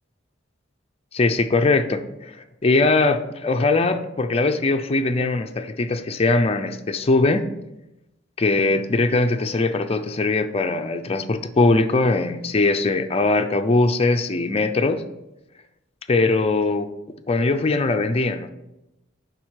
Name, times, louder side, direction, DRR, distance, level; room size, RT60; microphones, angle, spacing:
voice 1, 1.1-2.4 2.6-7.5 8.4-15.0 16.1-16.9 17.3-18.5, left 3 dB, 30° left, 7 dB, 0.5 m, -21 dB
7.5 x 5.3 x 4.8 m, 0.92 s
head